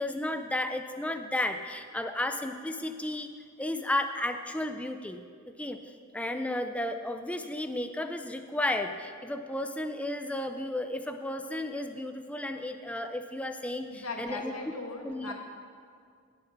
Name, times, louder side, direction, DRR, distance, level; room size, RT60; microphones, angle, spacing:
voice 1, 0.0-3.3 3.6-5.2 5.6-5.8 6.1-14.5 15.0-15.3, left 1 dB, 5° left, 7 dB, 0.4 m, -33 dB
voice 2, 13.9-15.3, left 3 dB, 90° left, 1 dB, 1.9 m, -38 dB
18.0 x 6.6 x 5.9 m, 2.1 s
head